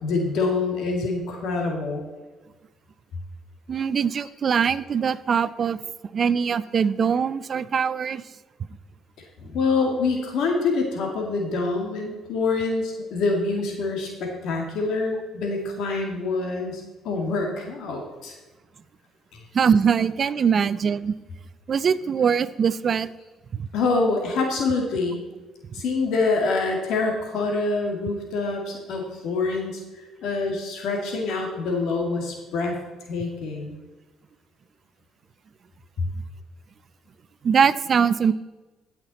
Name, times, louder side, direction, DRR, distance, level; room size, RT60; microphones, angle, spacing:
voice 1, 0.0-2.0 9.4-18.4 23.7-25.2 25.7-29.8 30.2-32.7 33.1-33.8, left 3 dB, 75° left, 1 dB, 2.2 m, -26 dB
voice 2, 3.7-5.8 6.1-8.2 19.5-21.1 21.7-23.1 23.5-23.7 37.4-38.3, right 6 dB, 45° right, 16 dB, 0.5 m, -22 dB
16.0 x 5.9 x 4.2 m, 1.2 s
supercardioid pair, 80°, 0 cm